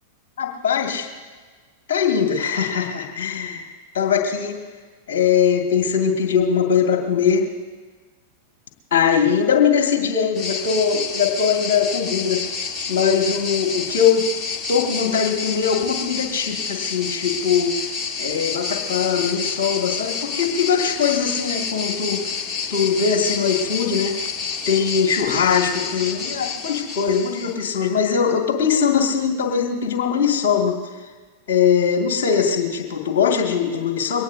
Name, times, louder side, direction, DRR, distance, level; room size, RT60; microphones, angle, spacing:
voice 1, 0.4-1.1 1.9-3.6 3.9-4.6 5.1-7.4 8.9-12.6 12.9-14.2 14.7-17.7 18.2-22.4 22.7-24.1 24.7-30.8 31.5-34.2, left 7 dB, 55° left, 1 dB, 2.2 m, -21 dB
sound 1, 10.4-27.7, left 5 dB, 25° left, 1.8 m, -29 dB
23.0 x 18.0 x 2.8 m, 1.4 s
figure-of-eight pair, 90°, 0 cm